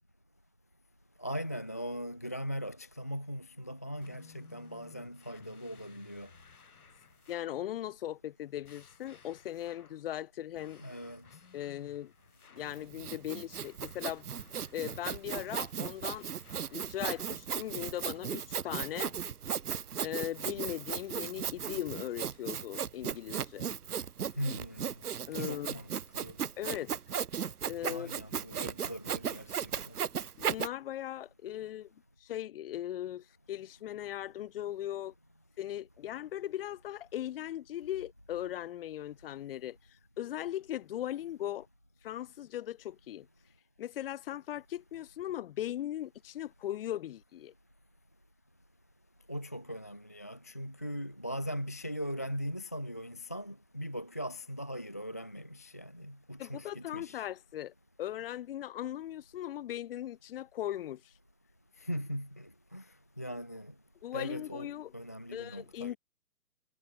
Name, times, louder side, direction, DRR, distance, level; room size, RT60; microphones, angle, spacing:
voice 1, 1.2-6.3 10.8-11.4 24.4-24.9 25.4-26.4 27.9-30.0 49.3-57.3 61.8-63.7 64.1-65.9, equal, 10° left, 0.5 m, -40 dB
sound 1, 4.0-7.7 8.6-10.1 10.5-12.8 13.5-17.4, left 6 dB, 70° left, 6.9 m, -58 dB
voice 2, 7.3-10.8 11.5-12.1 12.5-14.3 14.7-16.3 16.7-19.1 20.0-23.7 25.3-25.8 26.6-26.9 27.6-28.1 30.4-31.9 32.2-35.1 35.6-39.8 40.2-41.7 42.0-43.3 43.8-47.5 56.4-57.7 58.0-61.0 64.0-64.9 65.3-66.0, left 12 dB, 35° left, 2.8 m, -39 dB
Sawing, 12.6-30.7, right 8 dB, 70° right, 1.2 m, -36 dB
hypercardioid pair, 145°, 47 cm